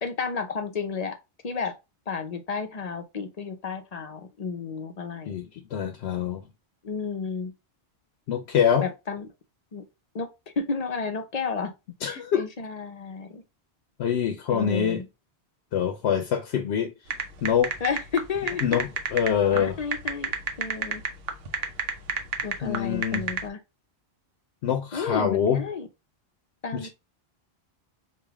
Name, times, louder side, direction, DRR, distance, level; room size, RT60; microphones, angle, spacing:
voice 1, 0.0-1.2 1.4-1.7 2.1-5.3 6.8-7.5 8.8-9.3 9.7-9.8 10.1-10.3 10.6-11.7 12.1-13.4 14.5-15.0 17.8-18.6 19.5-20.3 20.6-21.0 22.4-23.6 24.9-25.9 26.6-26.9, left 5 dB, 45° left, 0.6 m, -32 dB
voice 2, 5.3-6.4 8.3-8.9 12.0-12.4 14.0-15.0 15.7-16.9 17.4-17.7 18.6-19.8 22.6-23.2 24.6-25.6 26.7-26.9, left 8 dB, 85° left, 0.9 m, -25 dB
sound 1, 17.1-23.5, right 5 dB, 65° right, 0.9 m, -30 dB
3.3 x 2.4 x 3.4 m
omnidirectional pair, 1.1 m